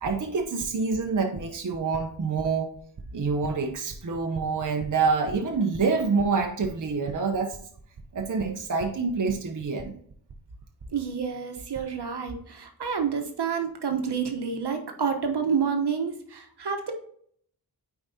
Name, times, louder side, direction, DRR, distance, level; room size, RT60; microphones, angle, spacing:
voice 1, 0.0-2.7 3.1-7.6 8.1-10.0, right 4 dB, 50° right, 3 dB, 0.8 m, -27 dB
voice 2, 10.9-16.9, right 6 dB, 70° right, 4 dB, 1.1 m, -29 dB
8.9 x 4.7 x 2.7 m, 0.62 s
wide cardioid pair, 70°, 41 cm